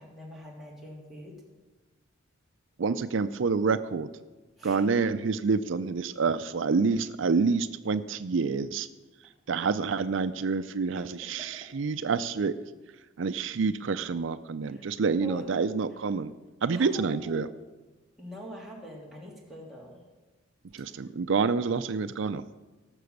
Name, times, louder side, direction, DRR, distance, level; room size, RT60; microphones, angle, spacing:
voice 1, 0.0-1.4 4.6-4.8 11.0-11.7 14.6-14.9 15.2-15.6 16.7-17.4 18.2-20.0 20.9-21.0, left 1 dB, ahead, -4 dB, 2.9 m, -45 dB
voice 2, 2.8-4.1 4.6-8.9 9.5-12.5 13.2-16.3 16.6-17.5 20.7-22.4, right 4 dB, 70° right, 11 dB, 0.5 m, -27 dB
18.0 x 6.9 x 6.6 m, 1.2 s
head